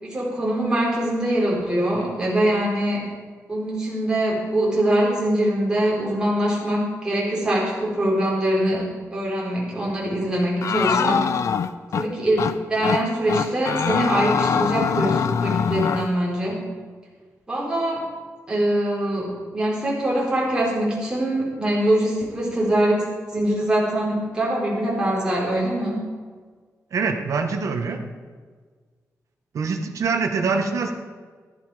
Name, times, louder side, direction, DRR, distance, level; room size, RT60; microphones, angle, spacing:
voice 1, 0.0-3.1 3.5-11.2 11.9-12.4 12.7-16.6 17.5-18.0 18.5-23.0 23.3-26.0, right 1 dB, 15° right, -5 dB, 4.4 m, -23 dB
sound 1, 10.6-12.1 12.4-12.5 12.8-13.0 13.3-16.1, left 6 dB, 60° left, 0.6 m, -23 dB
voice 2, 26.9-28.0 29.5-30.9, right 4 dB, 70° right, 4 dB, 1.4 m, -24 dB
14.5 x 12.0 x 5.0 m, 1.5 s
wide cardioid pair, 145°, 6 cm